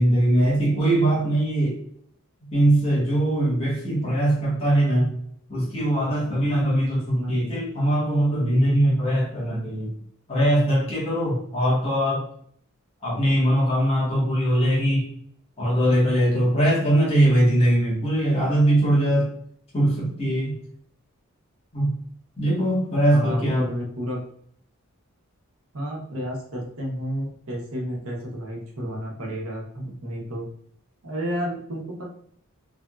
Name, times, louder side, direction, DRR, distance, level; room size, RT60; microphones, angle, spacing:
voice 1, 0.0-1.8 2.5-5.1 5.5-9.9 10.3-12.2 13.0-15.1 15.6-19.3 19.7-20.5 21.7-21.9 22.4-23.7, right 1 dB, 30° left, -7 dB, 1.3 m, -21 dB
voice 2, 23.1-24.2 25.7-30.4 31.0-32.1, equal, 85° right, -1 dB, 1.0 m, -31 dB
3.4 x 2.6 x 2.3 m, 0.64 s
head